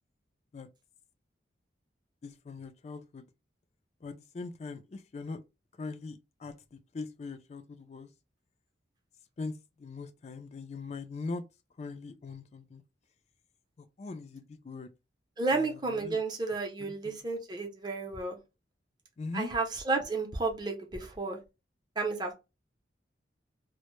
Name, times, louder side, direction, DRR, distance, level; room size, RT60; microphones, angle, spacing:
voice 1, 2.2-3.2 4.0-5.4 5.8-8.1 9.4-9.5 9.8-11.4 11.8-12.8 14.0-14.9 15.5-16.2 16.8-17.2 19.2-19.5, left 3 dB, 35° left, 0.3 m, -41 dB
voice 2, 15.4-18.4 19.3-21.4 22.0-22.3, right 3 dB, 25° right, 0.6 m, -32 dB
2.1 x 2.0 x 2.9 m
head